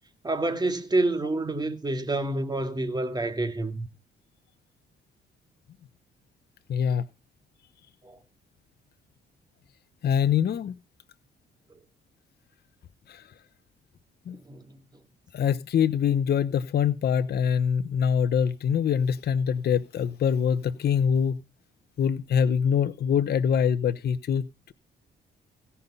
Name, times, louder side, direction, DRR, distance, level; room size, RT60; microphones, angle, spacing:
voice 1, 0.2-3.9 8.0-8.2 14.3-14.8, right 2 dB, 20° right, 2.2 m, -28 dB
voice 2, 6.7-7.0 10.0-10.7 13.1-13.2 14.3-14.4 15.3-21.4 22.0-24.7, left 7 dB, 55° left, 0.8 m, -24 dB
16.5 x 5.6 x 5.5 m
cardioid pair, 90°, 20 cm